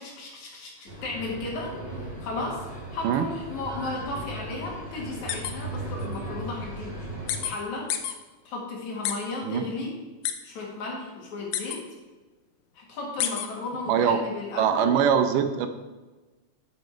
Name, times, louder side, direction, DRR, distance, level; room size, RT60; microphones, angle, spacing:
voice 1, 0.0-1.7 2.0-2.6 2.9-7.0 7.4-7.9 8.4-10.0 10.4-11.8 12.7-15.0, left 3 dB, 65° left, -2 dB, 3.2 m, -34 dB
sound 1, 0.9-7.5, right 1 dB, 20° right, 1.7 m, -37 dB
sound 2, 5.3-5.5 6.0-6.1 7.3-7.5 7.9-8.1 9.0-9.1 10.2-10.3 11.5-11.8 13.2-13.5, left 11 dB, 80° left, 2.2 m, -28 dB
voice 2, 13.9-14.2 14.6-15.7, right 8 dB, 85° right, 8 dB, 2.4 m, -22 dB
11.5 x 5.5 x 4.6 m, 1.2 s
omnidirectional pair, 3.7 m